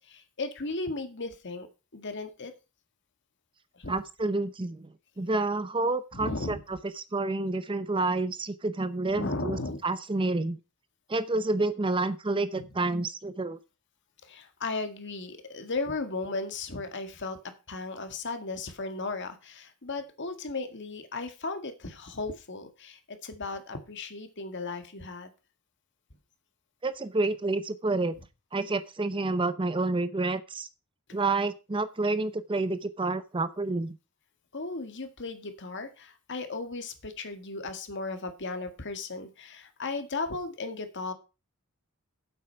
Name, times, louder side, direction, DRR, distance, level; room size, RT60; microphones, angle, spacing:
voice 1, 0.1-1.7 1.9-2.5 3.8-3.9 6.1-6.6 9.1-9.8 12.5-12.7 14.2-17.4 17.7-25.3 34.5-41.1, left 3 dB, 60° left, 7 dB, 1.8 m, -36 dB
voice 2, 3.9-4.9 5.2-10.6 11.1-13.6 26.8-28.1 28.5-30.7 31.1-33.9, right 2 dB, 25° right, 13 dB, 0.7 m, -29 dB
8.6 x 8.0 x 5.6 m, 0.30 s
head